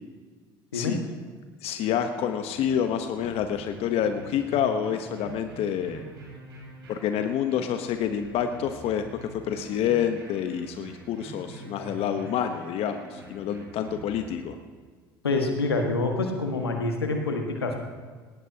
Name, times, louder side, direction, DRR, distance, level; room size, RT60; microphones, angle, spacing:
voice 1, 1.6-6.0 6.9-14.6, left 9 dB, 50° left, 7 dB, 1.0 m, -28 dB
sound 1, 1.8-14.4, right 3 dB, 85° right, 4.0 m, -46 dB
voice 2, 15.2-17.8, left 3 dB, 90° left, 3 dB, 1.7 m, -26 dB
19.5 x 18.0 x 2.9 m, 1.5 s
hypercardioid pair, 65°, 13 cm